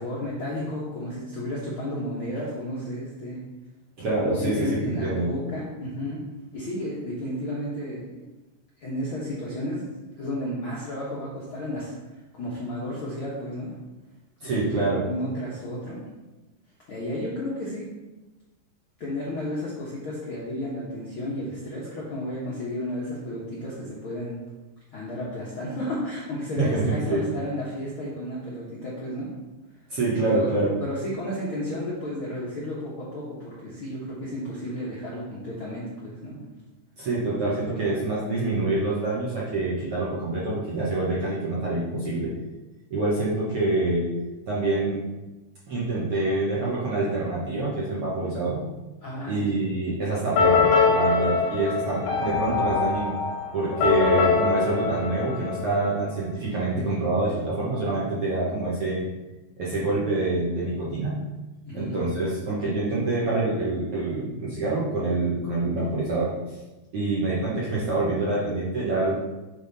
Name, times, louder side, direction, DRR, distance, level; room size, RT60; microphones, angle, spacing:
voice 1, 0.0-3.4 4.4-6.2 6.5-8.2 8.8-9.8 10.2-13.7 14.4-16.0 16.9-17.9 19.0-24.4 24.9-29.3 30.2-30.5 30.8-36.4 49.0-49.6 61.6-62.0, left 1 dB, 65° left, -7 dB, 1.3 m, -32 dB
voice 2, 4.0-5.3 14.4-15.1 26.6-27.2 29.9-30.7 37.0-42.3 42.9-44.1 44.5-45.0 45.7-48.6 49.3-53.1 53.5-59.0 59.6-61.2 61.7-66.3 66.9-69.1, right 2 dB, 60° right, -8 dB, 1.6 m, -26 dB
sound 1, 50.4-56.1, left 5 dB, 85° left, 3.2 m, -23 dB
9.0 x 3.6 x 4.0 m, 1.1 s
omnidirectional pair, 4.1 m